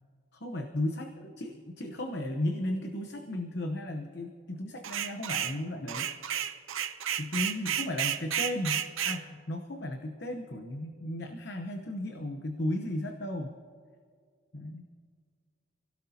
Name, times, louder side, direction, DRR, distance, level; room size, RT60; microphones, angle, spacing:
voice 1, 0.3-6.1 7.2-13.5 14.5-14.8, left 1 dB, 55° left, 5 dB, 0.9 m, -35 dB
sound 1, 4.8-5.6 5.9-9.2, right 10 dB, 80° right, 0.8 m, -32 dB
28.0 x 16.5 x 2.8 m, 2.1 s
head